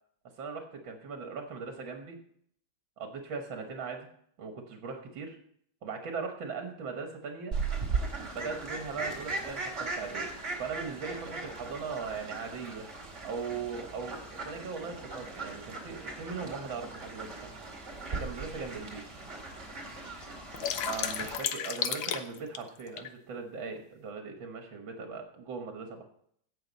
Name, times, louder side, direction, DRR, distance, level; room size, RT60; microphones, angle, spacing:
voice 1, 0.4-2.2 3.0-4.1 4.4-5.4 5.8-7.5 8.3-10.3 10.6-12.9 13.2-17.6 18.2-19.0 20.8-26.0, right 5 dB, 80° right, 4 dB, 2.1 m, -39 dB
Fowl, 7.5-21.4, right 3 dB, 35° right, 2.7 m, -38 dB
sound 1, 17.3-17.4 18.1-18.2 18.6-18.7 19.0-19.6 20.0-23.1, left 9 dB, 90° left, 1.6 m, -33 dB
17.0 x 6.8 x 4.1 m, 0.66 s
omnidirectional pair, 2.1 m